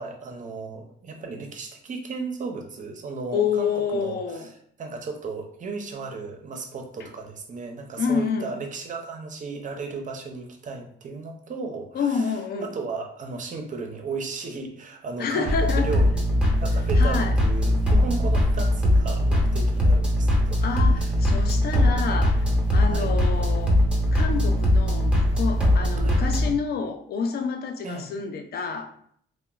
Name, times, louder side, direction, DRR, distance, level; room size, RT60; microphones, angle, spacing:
voice 1, 0.0-4.5 4.8-16.1 16.6-20.7 20.9-21.2 22.9-23.1 26.0-26.2 27.8-28.1, right 4 dB, 40° right, 3 dB, 0.5 m, -35 dB
voice 2, 3.3-4.5 7.0-7.1 8.0-8.5 11.9-12.7 15.2-15.9 17.0-17.3 20.6-23.8 24.1-28.9, left 5 dB, 55° left, 6 dB, 0.4 m, -28 dB
sound 1, 15.4-26.5, left 1 dB, 5° right, 0.8 m, -21 dB
2.8 x 2.1 x 2.3 m, 0.64 s
cardioid pair, 90°, 20 cm